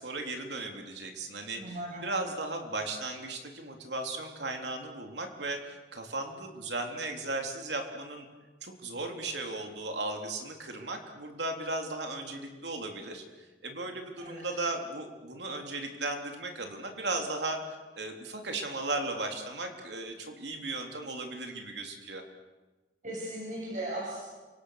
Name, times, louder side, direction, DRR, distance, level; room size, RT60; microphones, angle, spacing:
voice 1, 0.0-1.8 2.0-8.3 8.6-13.2 13.6-17.6 18.0-22.2, right 2 dB, 70° right, 3 dB, 3.5 m, -36 dB
voice 2, 1.6-2.0 14.2-14.4 23.0-24.2, right 1 dB, 45° right, -4 dB, 7.3 m, -37 dB
30.0 x 26.0 x 6.6 m, 1.2 s
head